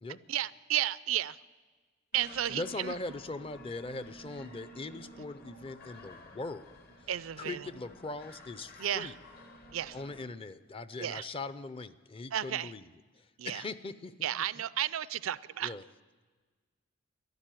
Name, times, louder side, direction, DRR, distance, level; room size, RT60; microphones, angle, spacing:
voice 1, 0.3-1.4 2.1-2.9 7.1-7.6 8.8-9.1 9.7-10.0 11.0-11.2 12.3-12.7 13.4-13.6 14.2-15.7, right 11 dB, 80° right, 18 dB, 0.4 m, -33 dB
sound 1, 2.1-10.3, equal, 50° left, 1.4 m, -52 dB
voice 2, 2.5-7.1 7.4-9.2 9.9-12.9 13.2-14.2 14.6-14.7 15.6-15.9, left 3 dB, 25° left, 14 dB, 0.6 m, -41 dB
13.0 x 11.5 x 9.1 m, 1.4 s
head